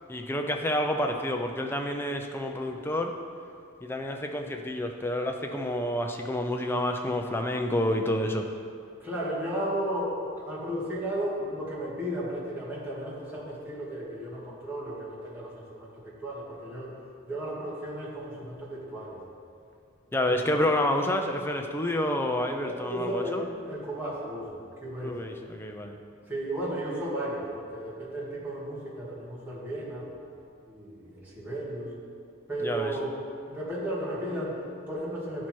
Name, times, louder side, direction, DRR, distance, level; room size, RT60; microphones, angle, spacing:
voice 1, 0.1-3.1 3.8-8.5 20.1-23.4 25.0-26.0 32.6-32.9, left 1 dB, 10° left, 3 dB, 0.4 m, -29 dB
voice 2, 9.0-16.9 17.2-19.2 20.1-20.6 22.4-25.2 26.3-30.1 30.7-32.0 32.5-33.1 33.5-35.5, right 1 dB, 10° right, -9 dB, 2.0 m, -34 dB
10.5 x 4.5 x 4.4 m, 2.3 s
head